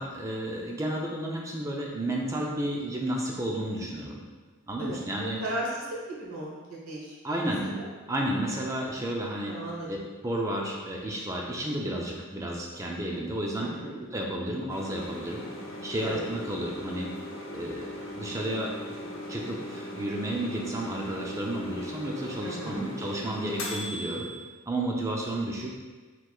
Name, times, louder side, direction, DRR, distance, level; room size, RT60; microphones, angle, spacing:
voice 1, 0.0-4.2 4.7-5.4 7.2-7.8 8.1-9.6 9.9-10.0 10.2-13.7 14.0-15.4 15.8-17.1 17.5-18.7 19.3-24.3 24.7-25.7, right 1 dB, 15° right, -1 dB, 0.4 m, -32 dB
voice 2, 4.8-7.9 9.4-9.9 13.6-14.0 16.0-16.2 22.4-22.9, right 1 dB, 80° right, -4 dB, 1.2 m, -36 dB
sound 1, 14.7-24.4, left 1 dB, 60° left, 0.9 m, -39 dB
4.5 x 3.8 x 2.3 m, 1.4 s
head